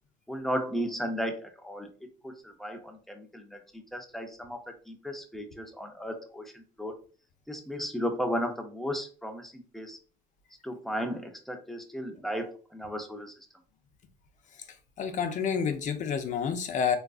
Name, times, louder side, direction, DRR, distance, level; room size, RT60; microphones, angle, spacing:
voice 1, 0.3-1.9 2.2-7.0 7.5-10.0 10.6-13.3, equal, ahead, 5 dB, 0.5 m, -35 dB
voice 2, 15.0-17.0, left 7 dB, 45° left, 7 dB, 0.5 m, -29 dB
3.6 x 2.4 x 2.3 m, 0.39 s
cardioid pair, 110°, 17 cm